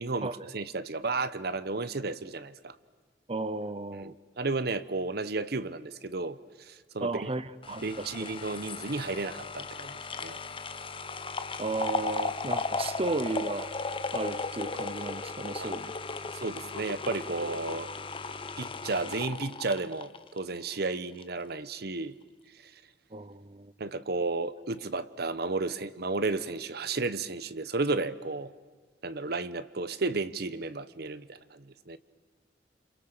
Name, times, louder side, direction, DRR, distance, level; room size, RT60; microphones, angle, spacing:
voice 1, 0.0-2.8 4.0-7.3 7.8-10.4 15.6-15.7 16.4-17.9 18.6-22.2 23.8-28.5 29.0-32.0, right 3 dB, 60° right, 1.1 m, -33 dB
voice 2, 3.3-4.1 7.0-8.1 11.6-13.7 14.1-15.9 23.1-23.7, right 3 dB, 35° right, 0.8 m, -34 dB
sound 1, 7.6-20.9 21.2-21.3, left 4 dB, 30° left, 1.1 m, -36 dB
29.0 x 27.0 x 6.8 m
head